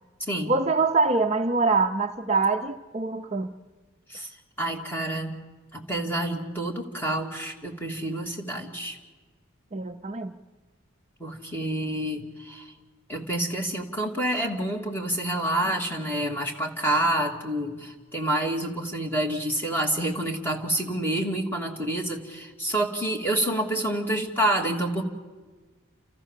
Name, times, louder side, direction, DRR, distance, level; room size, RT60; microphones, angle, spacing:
voice 1, 0.5-3.5 9.7-10.3, right 3 dB, 35° right, 0.6 m, -24 dB
voice 2, 4.6-5.4 5.7-9.0 11.2-12.7 13.1-25.0, right 1 dB, 10° left, 2.4 m, -28 dB
30.0 x 14.0 x 7.4 m
head